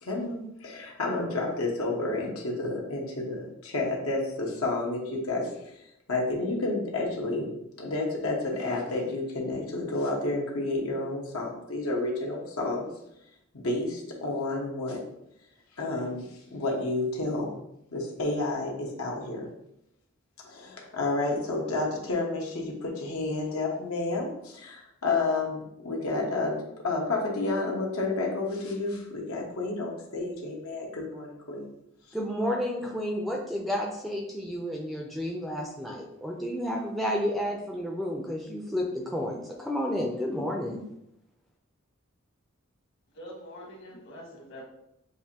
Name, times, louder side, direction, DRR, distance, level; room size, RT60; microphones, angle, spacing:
voice 1, 0.0-5.5 6.1-7.5 7.8-12.9 13.5-15.0 15.8-17.5 17.9-19.5 20.4-26.5 26.8-31.7, left 2 dB, 80° left, -2 dB, 1.1 m, -30 dB
voice 2, 32.1-40.8, equal, ahead, -1 dB, 0.4 m, -31 dB
voice 3, 43.1-44.6, equal, 55° left, -2 dB, 1.3 m, -44 dB
6.6 x 2.5 x 2.8 m, 0.80 s
head